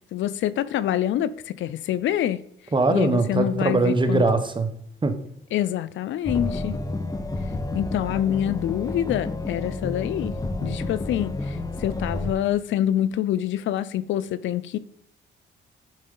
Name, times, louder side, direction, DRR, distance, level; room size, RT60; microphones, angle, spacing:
voice 1, 0.1-2.4 2.9-4.2 5.5-6.8 7.7-10.3 10.6-14.8, left 11 dB, 75° left, 0.5 m, -26 dB
voice 2, 2.7-4.7 5.0-5.2, right 3 dB, 25° right, 1.1 m, -21 dB
sound 1, 6.2-12.3, left 2 dB, 15° left, 0.8 m, -30 dB
10.5 x 5.0 x 3.8 m
cardioid pair, 90°, 20 cm